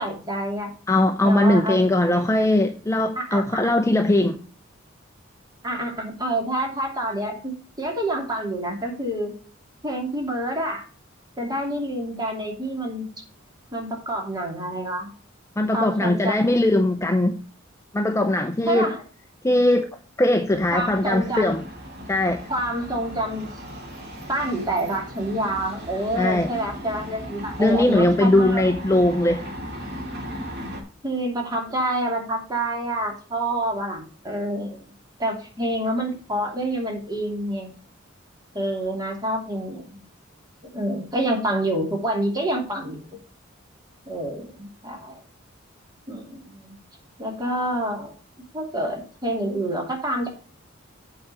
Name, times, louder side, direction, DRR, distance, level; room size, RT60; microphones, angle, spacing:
voice 1, 0.0-0.7 1.2-2.2 3.2-3.6 5.6-9.3 9.8-10.8 11.4-13.0 13.7-15.1 15.7-16.4 18.7-19.0 20.7-21.6 22.5-23.5 24.3-28.6 31.0-34.8 35.2-37.7 38.5-40.1 40.7-43.0 44.1-45.2 46.1-46.7 47.2-48.1 48.5-50.3, right 1 dB, 20° right, 2.9 m, -27 dB
voice 2, 0.9-4.4 15.6-17.4 17.9-18.9 19.4-19.9 20.2-21.6 22.1-22.5 26.2-26.5 27.6-29.4, left 1 dB, 15° left, 0.6 m, -20 dB
sound 1, 20.5-30.8, equal, 55° right, 3.0 m, -37 dB
8.4 x 4.9 x 6.8 m
head